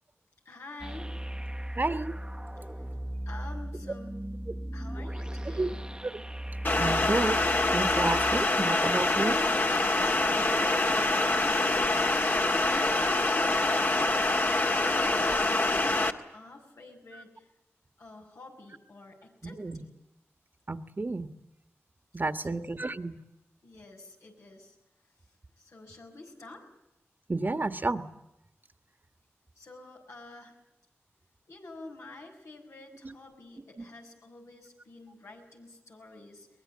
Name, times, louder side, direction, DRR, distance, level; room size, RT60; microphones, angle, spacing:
voice 1, 0.4-1.1 2.6-2.9 3.3-4.4 4.7-5.9 10.0-17.5 18.0-20.0 22.3-22.7 23.6-24.8 25.6-26.6 29.6-30.6 31.5-36.5, left 2 dB, 85° left, 0 dB, 6.3 m, -49 dB
sound 1, 0.8-8.4, right 1 dB, 15° right, 1.1 m, -37 dB
voice 2, 1.8-2.1 5.6-5.7 6.1-6.2 6.8-7.4 7.7-9.4 13.0-13.1 17.1-17.2 19.6-19.8 20.7-21.3 22.1-23.2 27.3-28.0 33.0-33.1, right 2 dB, 40° right, 10 dB, 1.5 m, -31 dB
sound 2, 6.6-16.1, left 2 dB, 45° left, 1.9 m, -25 dB
23.0 x 20.5 x 8.6 m, 0.89 s
cardioid pair, 55°, 5 cm